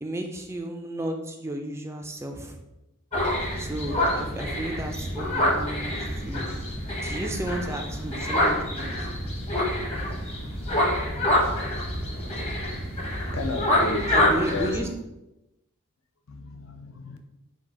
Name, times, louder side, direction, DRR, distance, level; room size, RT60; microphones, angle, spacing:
voice 1, 0.0-2.6 3.6-6.0 6.2-6.5 7.0-8.9 14.1-14.9, right 1 dB, 15° right, 4 dB, 0.3 m, -33 dB
sound 1, 3.1-14.8, left 1 dB, 30° left, 1.0 m, -26 dB
voice 2, 13.3-14.8 16.3-17.2, left 1 dB, 65° left, 5 dB, 0.5 m, -32 dB
3.8 x 2.4 x 4.5 m, 0.94 s
head